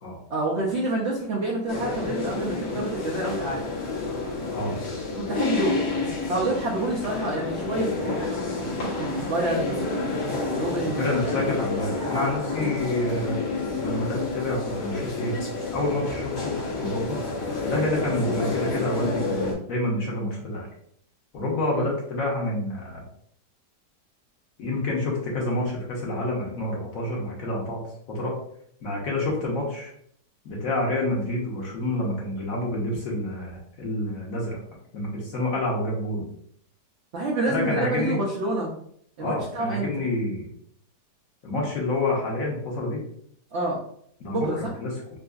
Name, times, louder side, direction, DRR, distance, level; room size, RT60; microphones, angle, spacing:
voice 1, 0.3-3.6 5.2-5.9 6.3-8.2 8.6-11.4 12.6-12.7 21.7-21.9 37.1-38.7 39.2-39.9 43.5-43.8 44.3-44.7, right 2 dB, 70° right, -3 dB, 0.6 m, -28 dB
sound 1, 1.7-19.5, left 3 dB, 75° left, 1.6 m, -29 dB
voice 2, 11.0-13.4 13.8-15.4 15.7-17.2 17.6-20.7 21.3-23.0 24.6-27.8 28.1-28.4 28.8-29.9 30.4-34.6 34.9-36.3 37.5-38.2 39.2-40.5 41.4-43.0 44.2-45.0, left 1 dB, 60° left, -3 dB, 1.2 m, -28 dB
3.7 x 2.5 x 2.3 m, 0.66 s
omnidirectional pair, 1.8 m